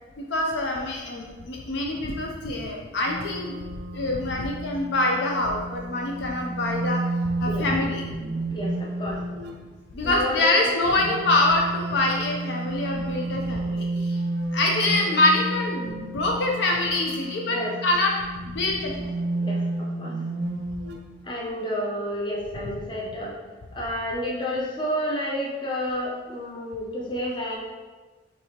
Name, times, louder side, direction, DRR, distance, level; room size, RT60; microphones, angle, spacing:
voice 1, 0.2-3.6 3.9-7.0 7.4-8.0 9.9-14.2 14.5-18.1 18.4-19.1 21.5-21.6, left 2 dB, 60° left, 0 dB, 0.4 m, -25 dB
sound 1, 3.1-9.6 10.7-21.0, right 2 dB, 55° right, 0.4 m, -31 dB
voice 2, 8.5-9.3 10.0-10.7 17.4-17.8 19.4-20.2 21.2-23.3 23.7-27.6, equal, 25° left, -3 dB, 0.7 m, -30 dB
4.7 x 3.2 x 2.8 m, 1.3 s
head